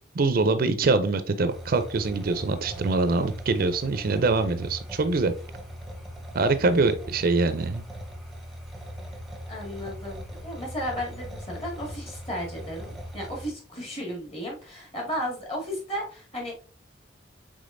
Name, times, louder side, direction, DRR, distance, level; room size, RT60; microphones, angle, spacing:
voice 1, 0.1-5.3 6.3-7.8, right 3 dB, 50° right, 10 dB, 0.4 m, -24 dB
sound 1, 1.5-13.5, equal, ahead, 0.7 m, -40 dB
voice 2, 9.5-16.6, equal, 35° left, -1 dB, 1.8 m, -34 dB
5.1 x 3.6 x 2.5 m, 0.37 s
head